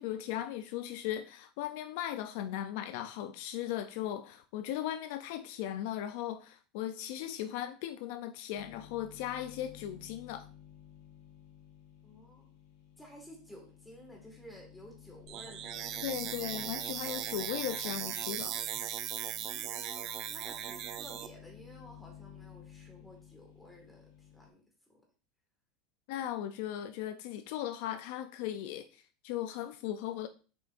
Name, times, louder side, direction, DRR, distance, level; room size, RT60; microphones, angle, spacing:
voice 1, 0.0-10.5 16.0-18.6 26.1-30.3, left 11 dB, 65° left, 0.4 m, -37 dB
sound 1, 8.6-24.5, left 10 dB, 80° left, 1.1 m, -54 dB
voice 2, 12.0-12.5 13.0-16.6 19.3-24.6 24.9-25.0, equal, 5° left, 1.9 m, -54 dB
sound 2, 15.3-21.3, right 11 dB, 45° right, 0.5 m, -38 dB
7.3 x 5.3 x 2.6 m
supercardioid pair, 160°, 0 cm